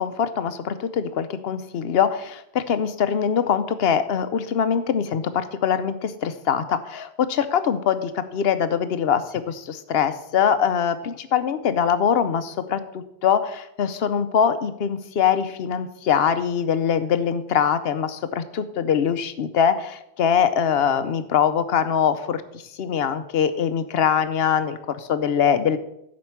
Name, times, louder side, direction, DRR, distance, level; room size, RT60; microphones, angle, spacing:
voice 1, 0.0-22.4 22.8-25.8, left 7 dB, 70° left, 12 dB, 0.9 m, -23 dB
7.7 x 5.2 x 7.0 m, 0.81 s
omnidirectional pair, 1.1 m